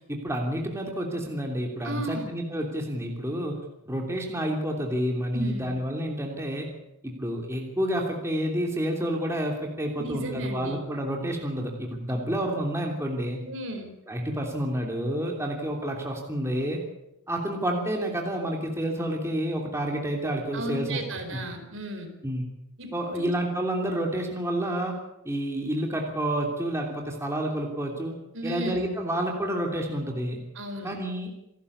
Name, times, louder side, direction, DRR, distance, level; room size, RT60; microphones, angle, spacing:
voice 1, 0.1-3.6 3.9-6.7 7.0-13.4 14.1-16.8 17.3-21.0 21.3-21.4 22.2-22.5 22.9-24.9 25.2-28.1 28.4-30.4 30.8-31.4, right 1 dB, 10° right, 1 dB, 3.0 m, -29 dB
voice 2, 1.8-2.3 5.3-5.8 10.0-10.8 12.1-12.3 13.4-13.9 20.5-22.1 22.8-23.3 28.3-28.9 30.5-30.9, right 1 dB, 60° right, 5 dB, 4.6 m, -35 dB
28.0 x 12.0 x 8.5 m, 0.87 s
head